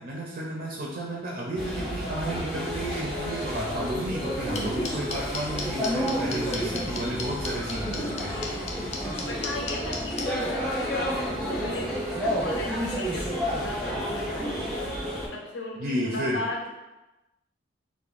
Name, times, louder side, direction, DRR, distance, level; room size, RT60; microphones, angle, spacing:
voice 1, 0.0-8.5 15.8-16.4, right 1 dB, 50° right, -3 dB, 0.4 m, -32 dB
sound 1, 1.5-15.3, equal, 5° left, 0.7 m, -30 dB
sound 2, 4.5-10.2, left 5 dB, 35° left, 0.3 m, -33 dB
voice 2, 8.0-14.9 15.3-16.7, left 2 dB, 75° left, -1 dB, 0.6 m, -37 dB
2.4 x 2.1 x 3.0 m, 1.0 s
head